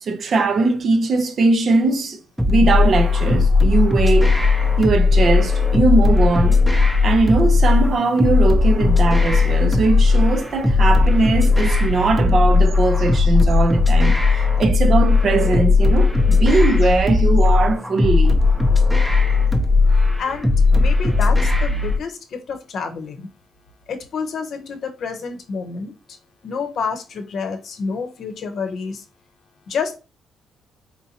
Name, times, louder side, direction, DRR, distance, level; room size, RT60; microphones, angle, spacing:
voice 1, 0.0-2.2 2.5-4.4 4.8-6.6 7.0-14.2 14.6-18.4, right 3 dB, 50° right, 0.6 m, -20 dB
sound 1, 2.4-22.0, left 3 dB, ahead, 0.7 m, -16 dB
voice 2, 20.2-23.3 23.9-26.2 26.4-29.0 29.7-30.0, left 5 dB, 60° left, 0.8 m, -29 dB
4.3 x 2.6 x 2.8 m
cardioid pair, 90°, 0 cm